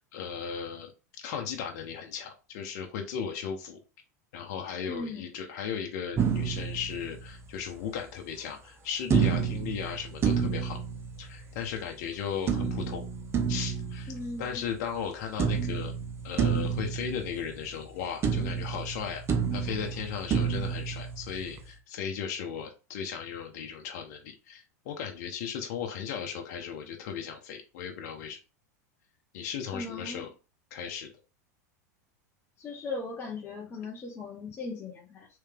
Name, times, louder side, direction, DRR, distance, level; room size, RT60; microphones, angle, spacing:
voice 1, 0.1-0.9 1.2-3.8 4.3-10.8 11.2-13.0 13.5-14.1 14.4-15.9 16.2-19.2 19.5-28.4 29.3-30.3 30.7-31.1, left 7 dB, 65° left, 3 dB, 1.0 m, -36 dB
voice 2, 4.9-5.3 14.1-14.6 29.7-30.2 32.6-35.3, left 3 dB, 25° left, -3 dB, 1.1 m, -38 dB
sound 1, 6.2-7.7 9.1-11.7 12.5-15.0 15.4-18.0 18.2-21.7, right 6 dB, 30° right, 0.7 m, -30 dB
3.4 x 3.2 x 3.4 m, 0.31 s
hypercardioid pair, 110°, 9 cm